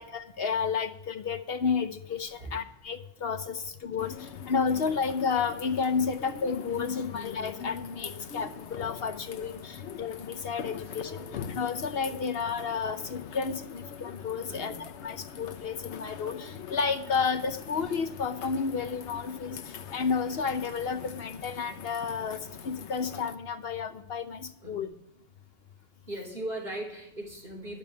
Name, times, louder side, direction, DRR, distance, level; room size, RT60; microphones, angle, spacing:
voice 1, 0.0-24.9, left 5 dB, 60° left, 9 dB, 1.0 m, -31 dB
sound 1, 4.0-23.4, left 7 dB, 85° left, 1.1 m, -43 dB
voice 2, 7.0-7.3 8.1-8.4 9.8-10.0 10.8-11.5 12.0-12.5 14.5-14.8 24.6-25.0 26.1-27.8, right 1 dB, 50° right, -2 dB, 4.4 m, -41 dB
11.0 x 6.9 x 9.4 m, 0.75 s
omnidirectional pair, 1.2 m